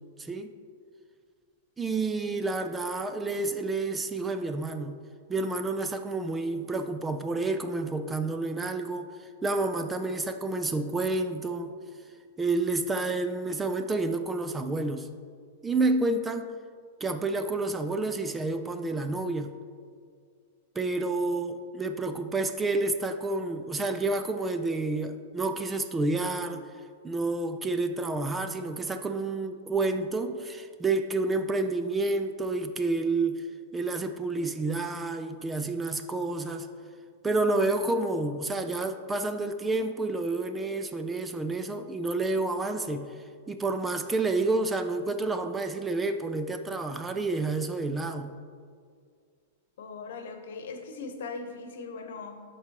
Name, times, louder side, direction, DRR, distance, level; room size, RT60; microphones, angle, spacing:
voice 1, 0.2-0.5 1.8-5.0 5.3-11.7 12.4-15.1 15.6-16.5 17.0-19.5 20.8-26.6 27.0-33.4 33.7-36.7 37.2-43.1 43.5-48.3, right 3 dB, 10° right, 8 dB, 0.3 m, -29 dB
voice 2, 49.8-52.4, left 4 dB, 75° left, 5 dB, 1.0 m, -39 dB
12.0 x 4.6 x 2.9 m, 2.1 s
supercardioid pair, 145°, 0 cm